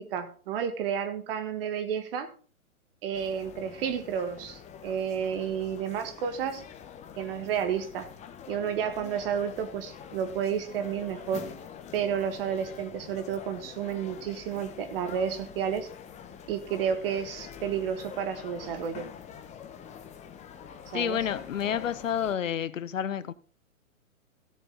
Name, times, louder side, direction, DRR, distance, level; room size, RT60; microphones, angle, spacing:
voice 1, 0.0-2.3 3.0-6.6 7.2-8.1 8.5-11.4 11.9-15.9 16.5-19.1 20.9-21.2, right 8 dB, 40° right, 1.8 m, -31 dB
sound 1, 3.1-22.3, left 8 dB, 15° left, 1.3 m, -45 dB
voice 2, 20.9-23.3, left 9 dB, 65° left, 1.0 m, -29 dB
16.0 x 7.1 x 3.8 m
figure-of-eight pair, 125°, 42 cm